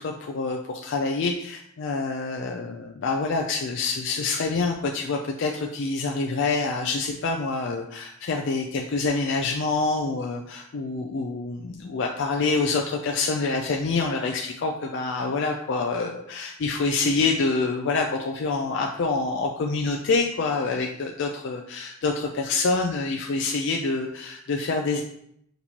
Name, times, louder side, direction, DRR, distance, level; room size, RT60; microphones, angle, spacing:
voice 1, 0.0-25.0, left 3 dB, 55° left, 2 dB, 0.4 m, -26 dB
4.3 x 3.9 x 2.9 m, 0.73 s
head